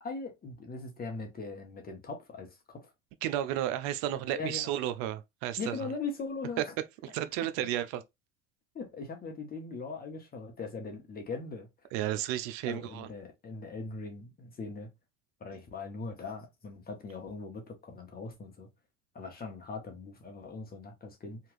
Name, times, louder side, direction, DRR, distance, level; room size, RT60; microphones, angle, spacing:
voice 1, 0.0-2.9 4.3-4.7 5.6-6.7 8.7-11.7 12.6-14.9 15.4-18.7 19.1-21.4, left 4 dB, 25° left, 0.9 m, -40 dB
voice 2, 3.2-5.8 6.6-6.7 7.0-8.0 11.9-13.1, right 12 dB, 55° right, 0.5 m, -32 dB
2.9 x 2.4 x 3.0 m
hypercardioid pair, 90°, 39 cm